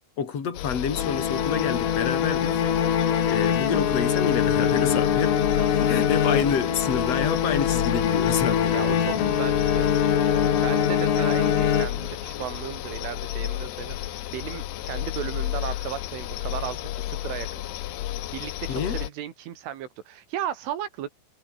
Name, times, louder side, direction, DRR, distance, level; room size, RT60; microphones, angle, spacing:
voice 1, 0.2-2.7 3.3-5.4 5.7-9.3 18.7-19.0, left 6 dB, 35° left, 4.4 m, -28 dB
sound 1, 0.5-19.1, left 14 dB, 70° left, 3.0 m, -33 dB
sound 2, 1.0-12.4, left 8 dB, 90° left, 6.2 m, -23 dB
voice 2, 8.7-17.6 18.3-21.2, right 10 dB, 75° right, 5.0 m, -35 dB
omnidirectional pair, 5.6 m